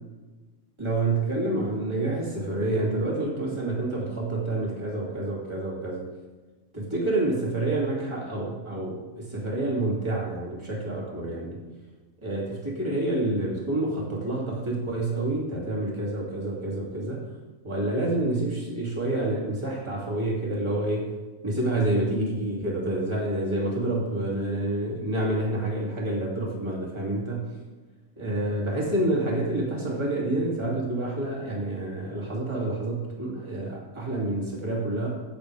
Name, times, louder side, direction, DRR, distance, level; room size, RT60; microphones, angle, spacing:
voice 1, 0.8-6.1 6.7-11.6 12.2-17.2 17.6-21.1 21.4-27.5 28.2-35.1, right 2 dB, 20° right, -5 dB, 2.9 m, -28 dB
14.5 x 8.9 x 3.5 m, 1.3 s
omnidirectional pair, 1.3 m